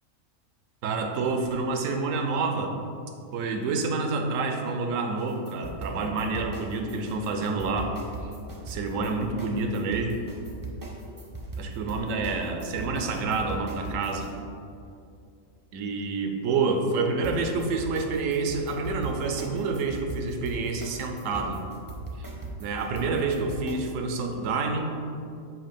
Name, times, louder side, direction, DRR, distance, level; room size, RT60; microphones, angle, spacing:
voice 1, 0.8-2.7 3.3-7.9 8.7-10.2 11.6-14.3 15.7-21.6 22.6-24.9, right 3 dB, 70° right, 4 dB, 1.0 m, -28 dB
sound 1, 5.2-14.3 17.2-23.9, right 3 dB, 20° right, 0.6 m, -39 dB
7.4 x 2.9 x 5.1 m, 2.5 s
omnidirectional pair, 1.4 m